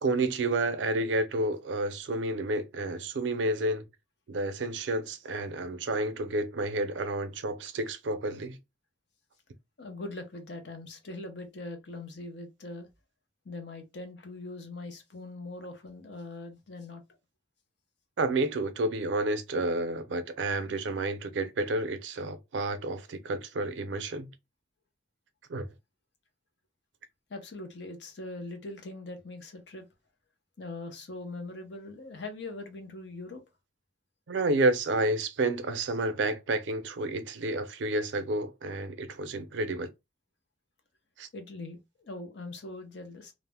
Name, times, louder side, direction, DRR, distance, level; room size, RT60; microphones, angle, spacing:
voice 1, 0.0-3.8 4.3-8.6 18.2-24.3 25.5-25.7 34.3-39.9 41.2-41.3, right 2 dB, 90° right, 0.5 m, -30 dB
voice 2, 9.8-12.9 13.4-17.0 27.3-29.9 30.6-33.4 41.3-43.3, left 2 dB, 70° left, 0.7 m, -41 dB
2.5 x 2.0 x 3.3 m
head